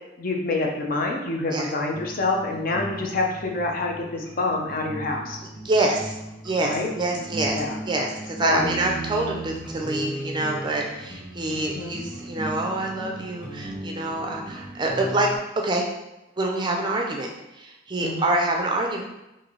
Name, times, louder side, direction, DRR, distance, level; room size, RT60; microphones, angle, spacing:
voice 1, 0.2-5.4 6.6-6.9 7.5-7.8 8.4-8.7 11.5-11.9 18.0-18.3, left 3 dB, 50° left, 1 dB, 0.6 m, -27 dB
sound 1, 1.9-15.4, right 1 dB, ahead, 0.9 m, -37 dB
voice 2, 5.6-6.2 6.4-7.6 7.9-15.3 15.6-15.8 16.4-17.3 17.6-19.0, right 2 dB, 25° right, 1 dB, 0.4 m, -26 dB
3.2 x 2.6 x 3.8 m, 0.93 s
head